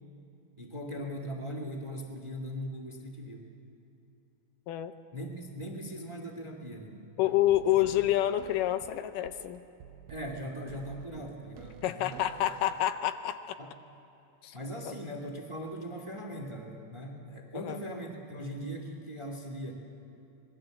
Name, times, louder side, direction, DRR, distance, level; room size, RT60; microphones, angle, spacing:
voice 1, 0.6-3.5 5.1-7.4 7.7-7.8 10.1-12.5 13.6-13.7 14.5-19.7, equal, 10° right, 2 dB, 1.6 m, -40 dB
voice 2, 7.2-9.6 11.8-13.6 14.4-14.6 14.8-14.9 17.5-17.8, left 13 dB, 80° left, 10 dB, 2.2 m, -28 dB
sound 1, 7.3-12.9, right 10 dB, 85° right, 2.5 m, -50 dB
26.5 x 20.0 x 7.8 m, 2.8 s
omnidirectional pair, 3.9 m